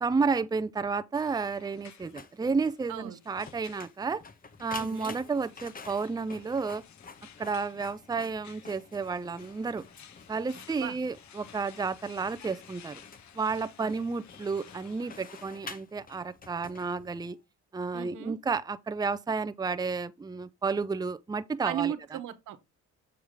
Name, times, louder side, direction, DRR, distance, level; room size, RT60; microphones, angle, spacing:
voice 1, 0.0-4.2 4.6-6.8 7.4-9.8 10.3-13.0 13.3-17.4 17.7-21.9, right 4 dB, 15° right, 0.5 m, -31 dB
sound 1, 1.1-15.5, left 9 dB, 65° left, 1.1 m, -55 dB
Printer, 2.0-17.4, left 5 dB, 30° left, 1.0 m, -49 dB
voice 2, 4.8-5.2 10.8-11.0 13.8-13.9 17.9-18.4 21.6-22.6, right 10 dB, 85° right, 1.2 m, -36 dB
7.2 x 3.7 x 4.7 m
cardioid pair, 90°, 30 cm